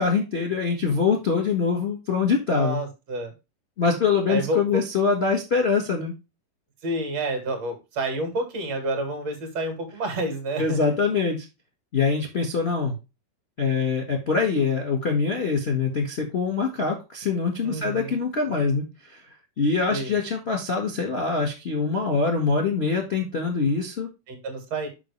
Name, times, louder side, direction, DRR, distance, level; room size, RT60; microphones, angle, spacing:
voice 1, 0.0-2.8 3.8-6.1 10.6-11.4 11.9-12.9 13.6-19.2 19.6-24.1, left 5 dB, 40° left, 2 dB, 0.9 m, -24 dB
voice 2, 2.5-3.3 4.3-4.8 6.8-10.8 17.6-18.2 19.9-20.1 24.3-24.9, right 2 dB, 55° right, 5 dB, 2.9 m, -29 dB
7.5 x 6.1 x 3.2 m, 0.26 s
omnidirectional pair, 3.8 m